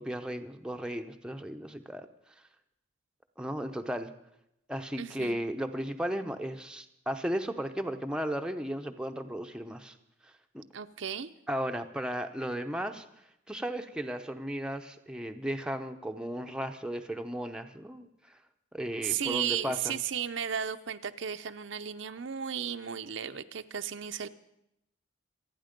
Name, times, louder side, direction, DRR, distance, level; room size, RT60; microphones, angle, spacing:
voice 1, 0.0-2.1 3.4-4.1 4.7-9.9 10.2-10.6 11.5-13.0 13.5-18.4 18.7-19.9, equal, 5° right, 5 dB, 0.7 m, -35 dB
voice 2, 5.0-5.4 10.7-11.3 19.0-24.3, right 8 dB, 70° right, 9 dB, 0.7 m, -34 dB
26.5 x 9.5 x 5.2 m, 0.83 s
head